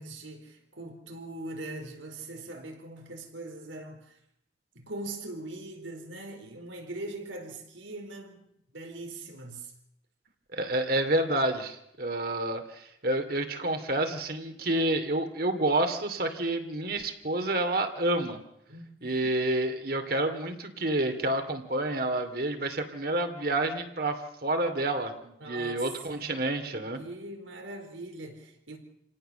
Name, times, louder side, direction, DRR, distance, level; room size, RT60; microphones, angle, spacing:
voice 1, 0.0-4.2 4.7-8.4 8.7-9.7 18.7-19.1 25.4-26.2 26.9-28.8, right 2 dB, 85° right, 4.5 m, -41 dB
voice 2, 10.5-18.4 19.0-27.0, right 1 dB, 50° right, 2.6 m, -29 dB
28.0 x 18.0 x 6.9 m
head